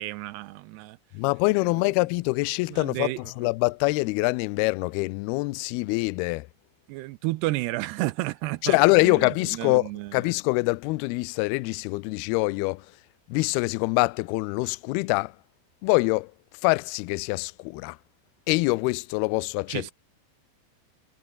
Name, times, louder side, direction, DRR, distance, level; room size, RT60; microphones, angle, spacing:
voice 1, 0.0-1.0 1.7-1.8 2.7-3.2 6.9-10.2 19.7-19.9, right 19 dB, 85° right, 2.6 m, -32 dB
voice 2, 1.1-6.5 8.6-12.9 13.3-15.3 15.8-16.3 16.6-18.0 18.5-19.9, left 24 dB, 85° left, 2.3 m, -24 dB
omnidirectional pair, 5.0 m